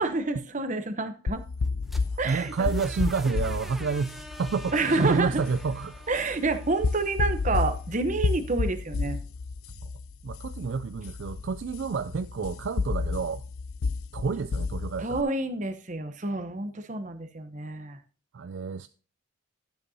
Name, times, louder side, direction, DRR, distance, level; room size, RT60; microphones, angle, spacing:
voice 1, 0.0-1.4 2.2-2.7 4.7-5.4 6.1-9.2 15.0-18.0, right 3 dB, 35° right, 0.8 m, -28 dB
sound 1, 1.3-15.2, left 4 dB, 80° left, 0.5 m, -32 dB
sound 2, 1.6-7.5, equal, ahead, 0.7 m, -45 dB
voice 2, 2.2-6.0 10.2-13.4 14.1-15.2 18.3-18.9, right 5 dB, 55° right, 0.3 m, -29 dB
12.5 x 8.0 x 2.7 m
head